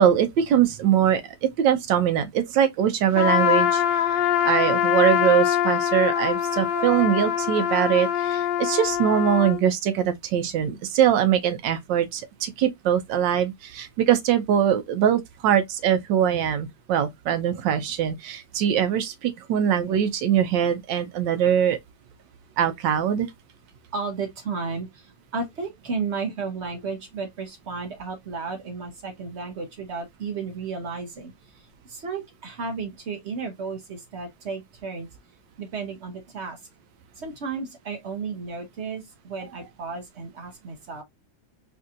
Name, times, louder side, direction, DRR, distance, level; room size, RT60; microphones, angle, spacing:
voice 1, 0.0-3.8 4.2-21.8 22.6-23.3, right 9 dB, 80° right, 1.3 m, -22 dB
Trumpet, 3.2-9.6, left 10 dB, 80° left, 1.3 m, -23 dB
voice 2, 23.9-24.9 25.3-31.3 31.9-35.1 35.6-36.6 37.2-41.0, right 4 dB, 55° right, 0.7 m, -33 dB
4.2 x 2.6 x 2.4 m
omnidirectional pair, 2.0 m